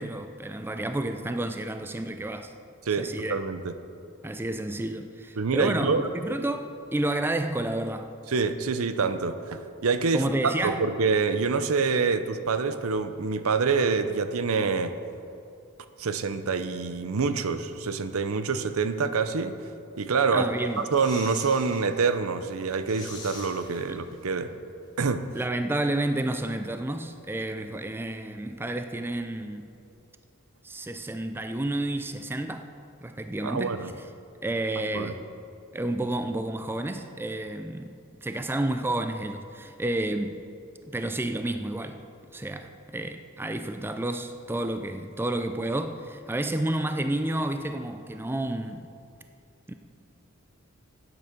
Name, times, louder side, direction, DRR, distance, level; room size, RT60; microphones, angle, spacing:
voice 1, 0.0-2.5 3.0-3.4 4.2-8.1 10.1-10.9 20.3-20.8 23.9-24.0 25.3-29.7 30.6-32.7 33.0-33.9 34.4-35.2 35.7-40.4 40.9-42.0 42.3-48.9 49.7-49.8, right 1 dB, 10° right, 8 dB, 0.3 m, -30 dB
voice 2, 2.9-3.7 5.4-6.1 8.3-14.9 16.0-19.6 20.0-20.5 20.9-24.5 25.0-25.2 33.4-33.9 34.9-35.1, right 4 dB, 75° right, 11 dB, 0.6 m, -26 dB
sound 1, 20.6-21.9 22.2-22.3 22.6-24.4 24.7-24.8, left 2 dB, 20° left, 2.0 m, -45 dB
9.3 x 8.6 x 6.6 m, 2.5 s
head